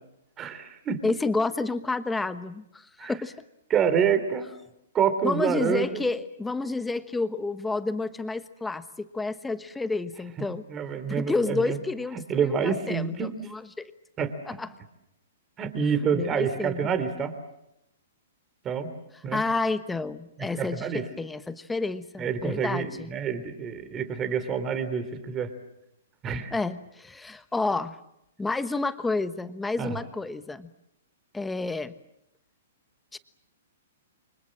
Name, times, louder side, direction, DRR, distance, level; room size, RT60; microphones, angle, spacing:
voice 1, 0.4-1.0 3.0-3.1 3.7-4.5 4.9-6.0 10.7-11.8 12.3-13.3 14.2-14.3 15.6-17.3 18.6-18.9 19.2-19.4 20.4-21.0 22.2-25.5 26.2-26.5 29.8-29.9, right 7 dB, 20° right, 11 dB, 3.3 m, -27 dB
voice 2, 1.0-3.3 5.2-10.6 11.1-13.9 14.5-14.7 16.1-16.9 19.3-23.1 26.5-28.0 28.4-30.7 31.3-31.9 33.1-33.2, left 3 dB, 5° left, 11 dB, 1.2 m, -30 dB
29.0 x 25.0 x 7.5 m, 0.84 s
hypercardioid pair, 150°, 0 cm